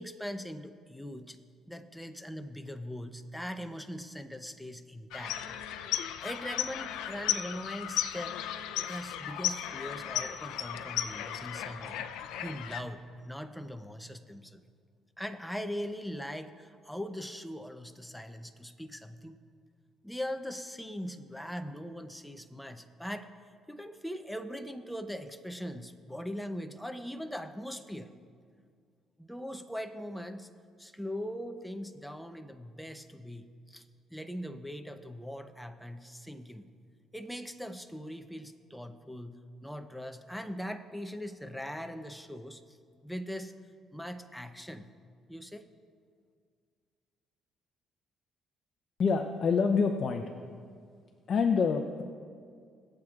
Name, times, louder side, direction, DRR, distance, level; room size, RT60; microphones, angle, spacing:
voice 1, 0.0-1.4 1.7-5.4 6.2-8.4 8.9-14.6 15.2-19.4 20.0-23.3 23.7-28.1 29.2-30.5 30.8-33.8 34.1-36.7 37.1-43.5 43.9-44.9 45.3-45.7, equal, ahead, 8 dB, 0.6 m, -41 dB
sound 1, 5.1-12.8, left 11 dB, 90° left, 0.5 m, -35 dB
voice 2, 49.0-50.3 51.3-52.0, left 5 dB, 50° left, 5 dB, 0.6 m, -26 dB
22.0 x 7.7 x 2.4 m, 2.2 s
cardioid pair, 95°, 0 cm